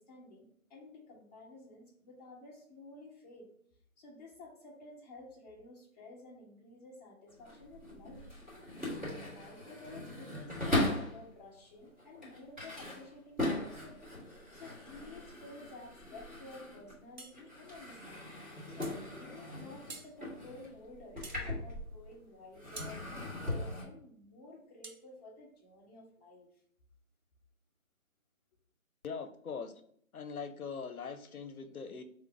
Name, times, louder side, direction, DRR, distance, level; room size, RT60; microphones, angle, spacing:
voice 1, 0.0-3.5 4.0-8.3 8.9-14.0 14.5-18.3 18.7-26.5, left 2 dB, 30° left, -5 dB, 1.2 m, -52 dB
sound 1, 7.3-11.2 11.8-17.1 17.3-22.2 22.5-23.8, left 1 dB, ahead, 1.7 m, -39 dB
sound 2, 17.2-17.4 18.8-19.0 19.9-20.1 21.2-21.5 22.8-23.0 24.8-25.0, right 3 dB, 45° right, 0.8 m, -47 dB
voice 2, 29.0-29.7 30.1-32.0, left 5 dB, 85° left, 9 dB, 0.8 m, -41 dB
3.7 x 3.0 x 4.7 m, 0.65 s
figure-of-eight pair, 160°, 42 cm